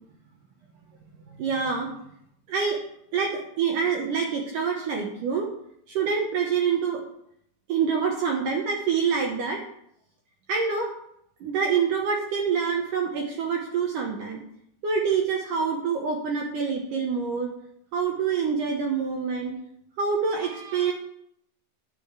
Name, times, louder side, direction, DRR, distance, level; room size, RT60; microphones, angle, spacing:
voice 1, 1.4-1.9 2.5-2.8 3.1-5.5 5.9-7.0 7.7-9.6 10.5-10.9 11.4-14.4 14.8-17.5 17.9-19.5 20.0-20.9, right 6 dB, 70° right, 0 dB, 2.1 m, -26 dB
10.0 x 5.5 x 8.1 m, 0.73 s
omnidirectional pair, 5.1 m